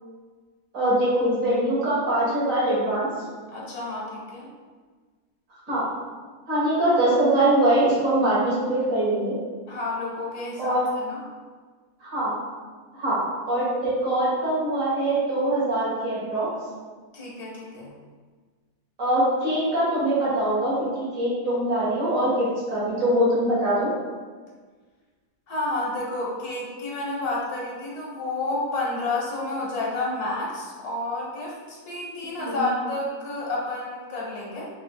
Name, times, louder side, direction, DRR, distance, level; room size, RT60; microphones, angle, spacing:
voice 1, 0.7-3.1 5.7-5.9 6.5-9.3 10.6-10.9 12.0-12.4 13.0-13.2 13.5-16.5 19.0-23.9 32.4-32.7, right 1 dB, 60° right, -8 dB, 1.8 m, -23 dB
voice 2, 3.5-4.5 9.7-11.2 17.1-17.9 25.5-34.7, left 2 dB, 85° left, -3 dB, 1.6 m, -30 dB
5.0 x 3.2 x 2.3 m, 1.5 s
omnidirectional pair, 1.6 m